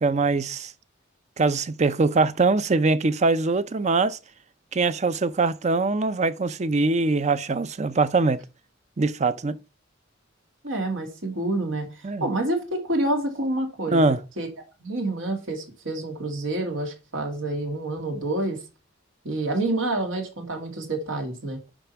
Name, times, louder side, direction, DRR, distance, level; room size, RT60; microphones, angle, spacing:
voice 1, 0.0-0.7 1.4-4.2 4.7-8.4 9.0-9.6 12.0-12.3 13.9-14.2, right 3 dB, 35° right, 0.6 m, -22 dB
voice 2, 10.6-11.9 12.2-14.0 14.4-14.5 14.8-18.6 19.2-21.6, right 2 dB, 80° right, 2.7 m, -28 dB
9.0 x 5.1 x 5.8 m
head